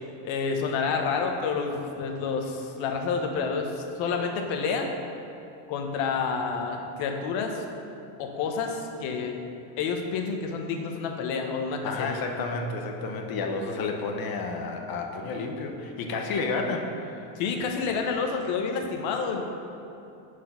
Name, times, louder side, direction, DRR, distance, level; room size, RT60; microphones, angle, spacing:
voice 1, 0.2-4.9 5.7-7.6 8.2-9.4 9.8-12.2 17.4-19.4, left 5 dB, 70° left, 3 dB, 1.1 m, -29 dB
voice 2, 11.8-17.3, left 3 dB, 45° left, 3 dB, 0.9 m, -31 dB
6.1 x 4.7 x 5.7 m, 2.8 s
cardioid pair, 125°, 49 cm